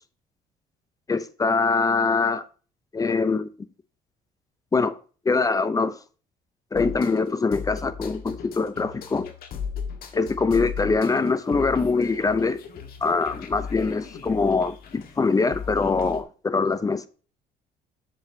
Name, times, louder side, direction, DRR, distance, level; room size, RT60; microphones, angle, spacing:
voice 1, 1.1-2.4 2.9-3.5 4.7-5.0 5.3-5.9 6.7-9.3 10.1-12.6 13.0-17.1, left 4 dB, 20° left, 0.6 m, -23 dB
sound 1, 6.7-16.2, left 6 dB, 60° left, 1.5 m, -37 dB
7.3 x 7.0 x 2.8 m
cardioid pair, 110°, 17 cm